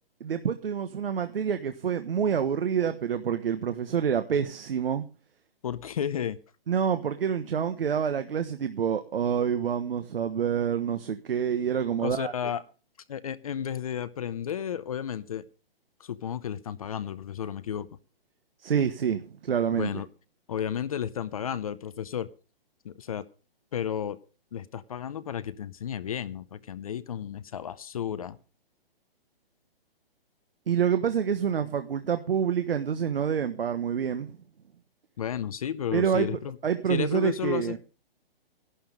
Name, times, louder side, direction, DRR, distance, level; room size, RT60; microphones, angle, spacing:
voice 1, 0.2-5.1 6.7-12.3 18.6-19.9 30.7-34.4 35.9-36.3 36.6-37.8, right 8 dB, 70° right, 9 dB, 1.3 m, -27 dB
voice 2, 5.6-6.4 12.0-12.6 13.1-15.5 16.0-17.9 19.7-20.1 20.5-22.3 22.8-23.2 23.7-24.2 24.5-28.4 35.2-36.6 36.9-37.8, left 9 dB, 35° left, 15 dB, 0.6 m, -32 dB
13.0 x 11.5 x 5.2 m, 0.34 s
hypercardioid pair, 165°, 30 cm